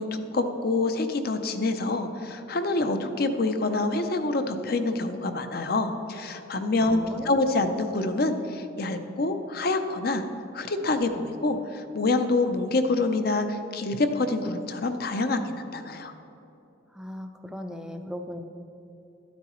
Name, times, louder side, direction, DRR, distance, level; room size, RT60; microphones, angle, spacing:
voice 1, 0.0-10.2 10.5-16.1, left 2 dB, 50° left, 8 dB, 0.6 m, -26 dB
voice 2, 6.8-7.4 16.9-18.4, left 1 dB, 5° right, 5 dB, 0.4 m, -37 dB
13.0 x 9.4 x 3.1 m, 2.9 s
head